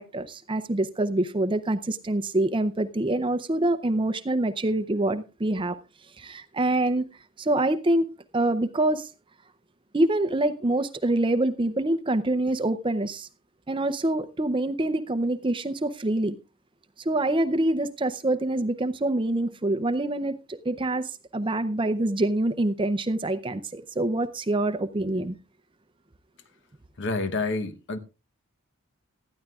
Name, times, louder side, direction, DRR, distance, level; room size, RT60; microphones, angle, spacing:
voice 1, 0.0-5.8 6.2-7.0 7.4-8.1 8.3-9.1 9.9-13.3 13.7-16.3 17.0-25.4, right 1 dB, 25° right, 0.5 m, -25 dB
voice 2, 27.0-28.0, left 3 dB, 55° left, 1.0 m, -28 dB
18.5 x 13.0 x 2.4 m
head